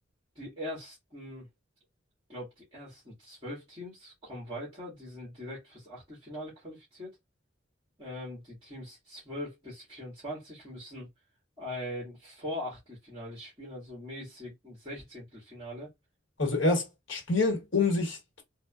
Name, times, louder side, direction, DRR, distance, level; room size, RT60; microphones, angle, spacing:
voice 1, 0.4-1.5 2.3-7.2 8.0-11.1 11.6-15.9, left 1 dB, 30° right, 1.8 m, -41 dB
voice 2, 16.4-18.4, left 3 dB, 75° left, 1.2 m, -27 dB
3.7 x 2.2 x 2.3 m
head